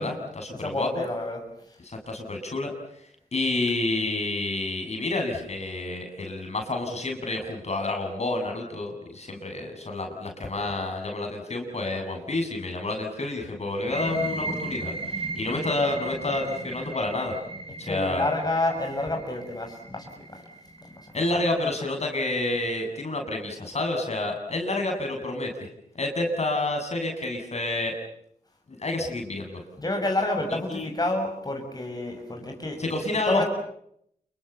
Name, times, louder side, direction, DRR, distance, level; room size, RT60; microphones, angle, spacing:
voice 1, 0.0-0.9 1.8-2.7 3.3-17.4 17.8-18.3 21.1-25.5 26.0-27.9 28.8-29.6 30.7-30.9 32.8-33.4, left 2 dB, 45° left, 3 dB, 7.5 m, -29 dB
voice 2, 0.5-1.4 17.8-20.4 20.9-21.1 29.8-32.8 33.3-33.4, left 2 dB, 25° left, 2 dB, 6.8 m, -29 dB
sound 1, 13.7-21.2, right 2 dB, 40° right, 6.3 m, -36 dB
28.0 x 23.5 x 7.1 m, 0.70 s
cardioid pair, 50°, 15 cm